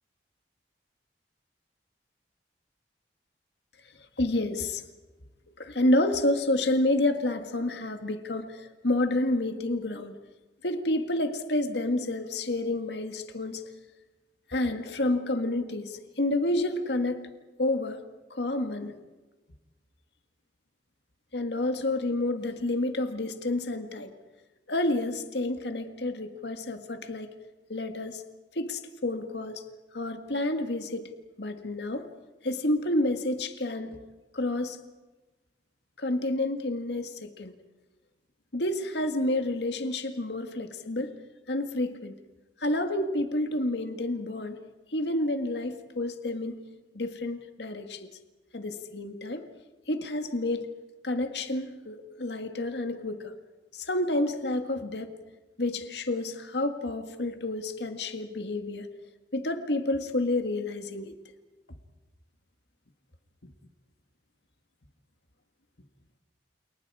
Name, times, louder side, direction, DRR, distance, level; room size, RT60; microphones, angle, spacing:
voice 1, 4.2-4.8 5.6-10.1 10.6-13.6 14.5-17.3 17.6-18.0 18.3-18.9 21.3-24.1 24.7-27.3 27.7-28.2 28.6-29.6 29.9-31.1 31.4-32.1 32.4-34.0 34.3-34.8 36.0-37.5 38.5-41.1 41.5-42.1 42.6-44.6 44.9-46.6 47.0-48.1 48.5-49.4 49.9-50.7 51.0-53.3 53.7-55.1 55.6-58.9 59.3-61.1, left 1 dB, 70° left, 7 dB, 1.9 m, -29 dB
30.0 x 29.0 x 4.9 m, 1.2 s
head